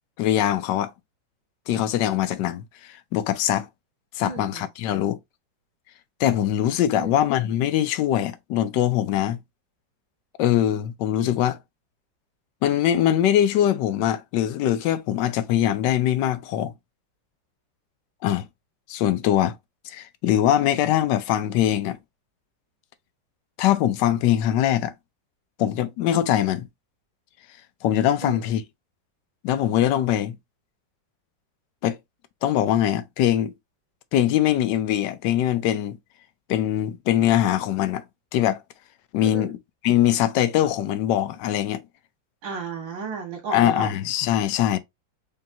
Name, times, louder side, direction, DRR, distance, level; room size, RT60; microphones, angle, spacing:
voice 1, 0.2-0.9 1.7-3.7 4.1-5.2 6.2-9.4 10.4-11.6 12.6-16.7 18.2-18.5 18.9-19.6 19.8-22.0 23.6-24.9 25.6-26.7 27.8-28.6 29.4-30.4 31.8-32.0 32.4-33.5 34.1-36.0 36.5-38.0 38.3-38.6 39.1-39.6 39.8-41.8 43.5-44.8, left 11 dB, 75° left, 1.2 m, -22 dB
voice 2, 4.2-4.7 6.9-7.1 28.2-28.4 39.2-39.6 42.4-43.9, right 5 dB, 90° right, 2.3 m, -34 dB
5.2 x 2.8 x 2.6 m
omnidirectional pair, 2.0 m